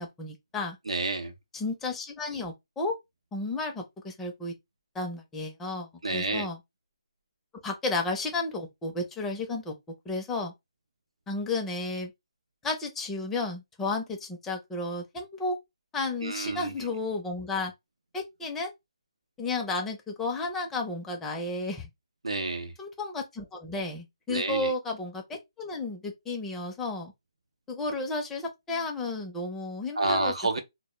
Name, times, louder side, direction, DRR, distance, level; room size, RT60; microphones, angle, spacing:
voice 1, 0.0-0.8 1.5-3.0 3.3-4.5 4.9-6.6 7.6-9.7 10.1-10.5 11.3-12.1 12.6-15.6 15.9-17.7 18.1-18.7 19.4-21.9 22.8-27.1 27.7-30.3, left 3 dB, 10° left, 0.5 m, -32 dB
voice 2, 0.9-1.3 6.0-6.5 16.2-16.7 22.2-22.7 24.3-24.7 30.0-30.6, right 2 dB, 90° right, 0.7 m, -29 dB
2.1 x 2.0 x 3.0 m
hypercardioid pair, 155°, 3 cm